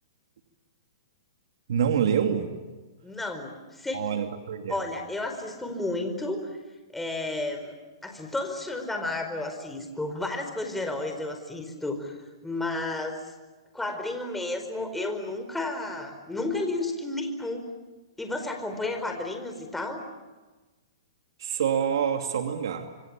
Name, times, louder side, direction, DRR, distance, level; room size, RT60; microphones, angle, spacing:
voice 1, 1.7-2.5 3.9-4.8 21.4-22.9, right 8 dB, 70° right, 6 dB, 2.5 m, -26 dB
voice 2, 3.0-4.0 4.7-6.6 6.9-7.7 8.0-12.2 12.4-13.3 13.7-17.7 18.2-20.0, left 2 dB, 5° left, 5 dB, 4.6 m, -32 dB
27.0 x 25.0 x 8.8 m, 1.2 s
hypercardioid pair, 130°, 3 cm